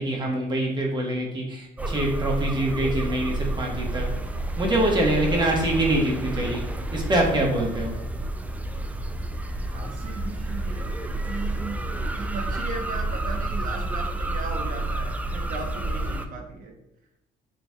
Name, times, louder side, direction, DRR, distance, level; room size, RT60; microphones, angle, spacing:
voice 1, 0.0-4.1 4.6-6.6 6.9-7.9, right 1 dB, 25° right, -1 dB, 1.2 m, -24 dB
sound 1, 1.8-16.3, right 2 dB, 10° right, 0.3 m, -30 dB
voice 2, 9.7-16.8, right 3 dB, 55° right, 3 dB, 1.0 m, -37 dB
6.7 x 3.4 x 2.3 m, 0.85 s
cardioid pair, 110°, 17 cm